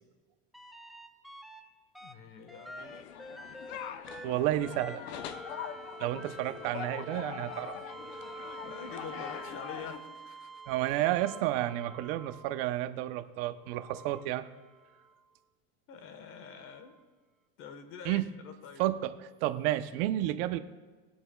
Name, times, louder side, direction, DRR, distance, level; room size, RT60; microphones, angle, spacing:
sound 1, 0.5-1.6 1.9-12.7 13.6-15.1 16.9-17.0, right 1 dB, ahead, 0.5 m, -47 dB
voice 1, 2.0-3.1 8.6-10.6 14.0-14.1 15.9-17.0 17.6-18.8, left 6 dB, 40° left, 8 dB, 1.3 m, -46 dB
sound 2, 2.8-10.0, left 9 dB, 75° left, 0.8 m, -43 dB
voice 2, 4.2-5.0 6.0-7.7 10.7-14.4 18.0-18.3 18.8-20.6, right 14 dB, 60° right, 11 dB, 0.8 m, -31 dB
22.0 x 8.3 x 2.3 m, 1.4 s
supercardioid pair, 140°, 32 cm